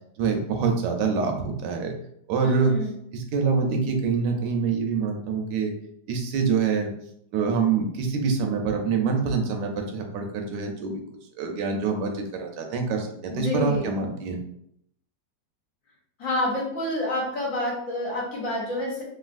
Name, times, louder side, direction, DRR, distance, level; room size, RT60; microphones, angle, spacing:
voice 1, 0.2-1.9 2.3-2.7 3.1-5.7 6.1-6.9 7.3-11.0 11.4-14.4, right 5 dB, 80° right, 3 dB, 1.2 m, -25 dB
voice 2, 2.4-2.9 13.3-13.9 16.2-19.0, left 1 dB, 55° left, -4 dB, 1.2 m, -28 dB
3.1 x 2.5 x 2.5 m, 0.71 s
omnidirectional pair, 1.8 m